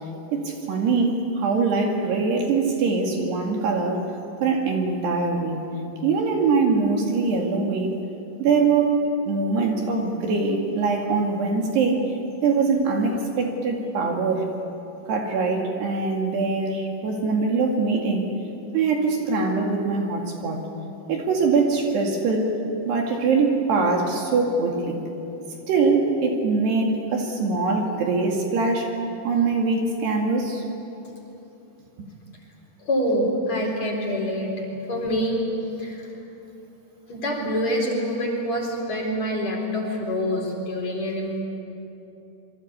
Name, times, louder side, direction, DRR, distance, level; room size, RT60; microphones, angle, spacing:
voice 1, 0.3-4.1 4.4-5.6 6.0-8.0 8.4-9.0 9.3-12.0 12.4-14.5 15.1-18.3 18.7-20.6 21.1-22.5 22.8-25.0 25.7-28.9 29.2-30.6, right 4 dB, 60° right, 1 dB, 4.1 m, -23 dB
voice 2, 32.8-34.5 34.9-35.4 35.8-36.1 37.1-41.4, equal, 35° left, -1 dB, 4.9 m, -26 dB
27.0 x 24.0 x 8.7 m, 2.9 s
omnidirectional pair, 5.6 m